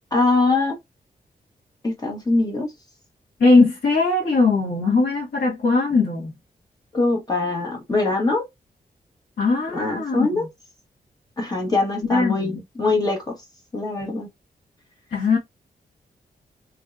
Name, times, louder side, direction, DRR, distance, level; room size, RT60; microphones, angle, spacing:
voice 1, 0.1-0.8 1.8-2.7 6.9-8.4 9.7-10.4 11.4-13.3 13.7-14.3, left 3 dB, 25° left, 1.1 m, -22 dB
voice 2, 3.4-6.3 9.4-10.4 12.0-12.6 15.1-15.4, left 3 dB, 80° left, 1.4 m, -20 dB
3.1 x 2.7 x 2.4 m
wide cardioid pair, 175°, 16 cm